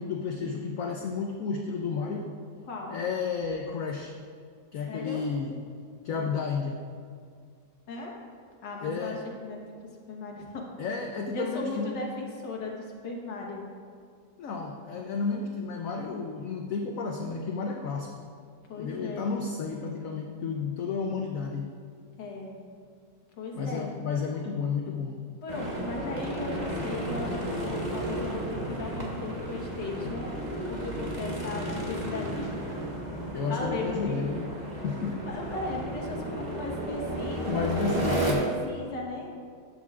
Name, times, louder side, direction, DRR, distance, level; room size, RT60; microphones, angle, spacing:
voice 1, 0.0-2.2 2.9-4.1 4.7-5.6 6.0-6.8 8.8-9.2 10.8-12.0 14.4-18.3 18.8-21.7 23.5-25.2 33.3-34.5 34.8-35.2 37.5-38.4, left 5 dB, 65° left, 2 dB, 0.9 m, -32 dB
voice 2, 2.7-3.0 4.9-5.2 7.9-8.1 8.6-9.6 10.1-10.7 11.3-13.7 18.7-19.4 22.2-22.6 23.4-24.0 25.4-30.3 30.7-32.9 33.4-34.3 35.2-37.7 38.0-39.3, left 2 dB, 85° left, -1 dB, 1.9 m, -37 dB
sound 1, 25.5-38.3, right 1 dB, 30° right, 1.1 m, -33 dB
12.0 x 7.8 x 2.4 m, 2.1 s
omnidirectional pair, 1.8 m